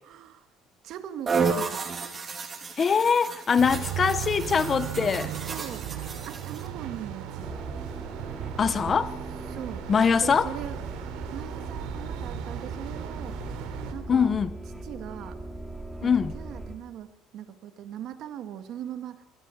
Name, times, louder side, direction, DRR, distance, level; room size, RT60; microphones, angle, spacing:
voice 1, 0.0-0.5 0.8-1.9 5.4-5.9 6.2-7.7 9.5-9.9 10.2-10.8 11.3-13.4 13.9-14.4 14.8-15.4 16.0-19.3, right 10 dB, 50° right, 1.8 m, -40 dB
sound 1, 1.3-6.7, right 5 dB, 25° right, 2.5 m, -32 dB
voice 2, 2.8-5.3 8.6-9.1 9.9-10.5 14.1-14.6 16.0-16.3, left 6 dB, 25° left, 0.9 m, -23 dB
sound 2, 3.6-13.9, right 10 dB, 75° right, 3.1 m, -37 dB
sound 3, 7.4-16.8, right 2 dB, 5° right, 2.4 m, -40 dB
26.0 x 17.5 x 6.5 m
cardioid pair, 160°, 0 cm